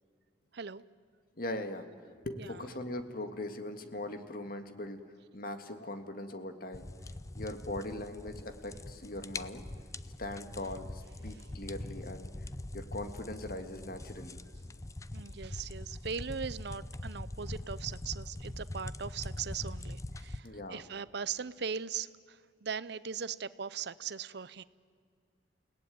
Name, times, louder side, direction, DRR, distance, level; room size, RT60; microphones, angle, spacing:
voice 1, 0.5-0.8 2.4-2.6 11.4-11.5 15.1-24.6, right 6 dB, 65° right, 17 dB, 0.7 m, -39 dB
voice 2, 1.4-5.0 5.3-6.8 7.4-9.7 10.2-12.3 12.7-14.4 20.4-20.8, left 1 dB, 55° left, 7 dB, 1.9 m, -40 dB
sound 1, 6.7-20.4, left 1 dB, 20° left, 0.6 m, -43 dB
30.0 x 18.5 x 9.4 m, 2.2 s
head